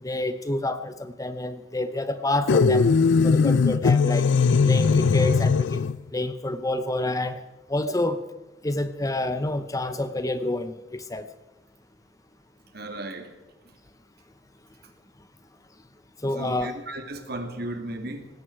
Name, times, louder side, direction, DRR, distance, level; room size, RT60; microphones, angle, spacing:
voice 1, 0.0-2.9 3.2-4.3 4.6-5.8 6.1-7.4 7.7-8.2 8.6-11.3 16.2-16.7, left 2 dB, 20° left, 11 dB, 0.8 m, -28 dB
sound 1, 2.5-6.0, left 5 dB, 75° left, 0.4 m, -19 dB
voice 2, 12.7-13.3 16.3-18.3, right 2 dB, 55° right, 6 dB, 2.5 m, -35 dB
19.0 x 16.0 x 4.6 m, 1.1 s
head